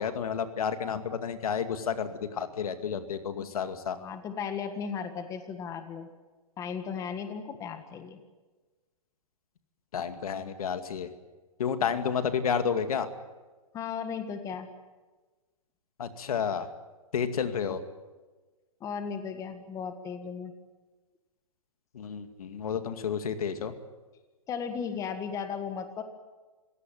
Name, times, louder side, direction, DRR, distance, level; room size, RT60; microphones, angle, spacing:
voice 1, 0.0-4.0 9.9-11.1 11.6-13.1 16.0-16.7 17.1-17.8 21.9-23.7, left 7 dB, 75° left, 9 dB, 2.3 m, -31 dB
voice 2, 4.0-6.1 6.6-8.2 13.7-14.7 18.8-20.5 24.5-26.0, left 6 dB, 15° left, 8 dB, 1.6 m, -36 dB
27.0 x 16.5 x 9.2 m, 1.3 s
hypercardioid pair, 155°, 19 cm